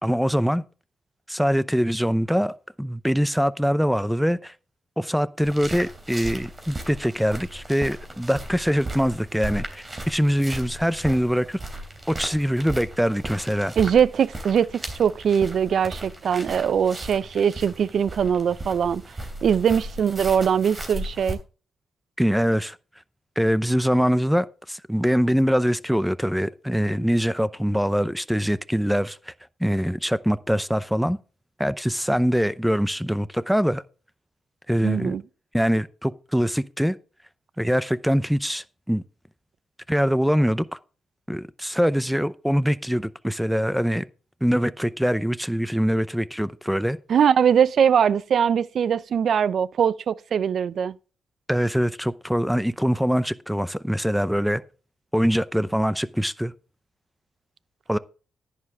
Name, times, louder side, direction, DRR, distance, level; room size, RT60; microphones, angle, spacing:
voice 1, 0.0-0.6 1.3-4.5 5.0-11.6 12.1-13.7 22.2-22.8 23.4-29.3 29.6-31.2 31.6-33.8 34.7-35.2 35.5-37.0 37.6-39.0 39.9-40.8 41.3-44.1 44.4-47.0 51.5-54.6 55.1-56.5 57.9-58.0, equal, ahead, 0.6 m, -23 dB
sound 1, 5.4-21.3, right 1 dB, 25° right, 3.1 m, -36 dB
voice 2, 13.8-19.0 19.4-21.4 34.8-35.2 47.1-50.9, right 8 dB, 65° right, 0.5 m, -21 dB
11.0 x 9.9 x 3.4 m
cardioid pair, 90°, 0 cm